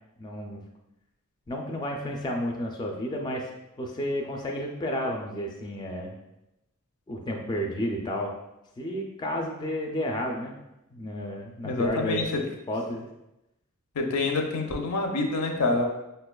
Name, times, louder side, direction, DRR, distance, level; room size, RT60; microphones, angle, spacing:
voice 1, 0.2-0.6 1.5-3.5 3.8-6.1 7.1-8.3 8.8-10.6 10.9-12.2 12.7-13.1, equal, 20° left, 1 dB, 0.3 m, -31 dB
voice 2, 11.6-12.2 14.0-15.9, left 3 dB, 85° left, 3 dB, 0.5 m, -26 dB
5.2 x 2.2 x 2.2 m, 0.91 s
head